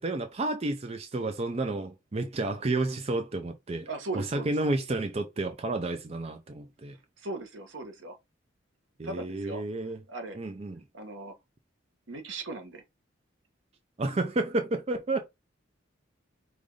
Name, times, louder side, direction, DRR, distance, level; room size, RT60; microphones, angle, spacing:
voice 1, 0.0-3.9 4.1-7.0 9.0-10.0 10.3-10.8 14.0-15.2, right 2 dB, 35° right, 0.5 m, -31 dB
voice 2, 3.9-4.5 7.2-8.1 9.0-9.6 10.1-10.4 10.9-11.3 12.1-12.8, right 2 dB, 75° right, 1.1 m, -38 dB
5.0 x 2.6 x 3.8 m
head